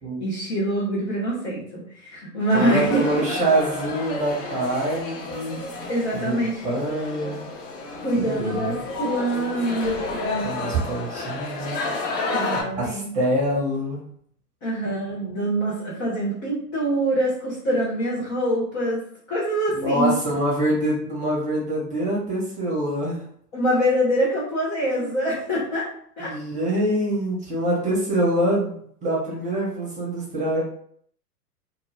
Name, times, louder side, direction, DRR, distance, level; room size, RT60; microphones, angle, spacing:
voice 1, 0.2-3.2 5.9-6.7 8.0-10.5 12.3-13.1 14.6-19.0 19.3-20.1 23.5-25.9 26.2-26.3, right 1 dB, 20° left, -8 dB, 0.3 m, -25 dB
sound 1, 2.4-12.6, left 3 dB, 45° left, 0.9 m, -31 dB
voice 2, 2.5-5.6 6.1-7.5 8.1-8.7 10.4-12.0 12.7-14.0 19.7-23.2 26.2-30.6, right 1 dB, 15° right, -3 dB, 0.9 m, -25 dB
2.2 x 2.1 x 3.1 m, 0.63 s
hypercardioid pair, 110°, 48 cm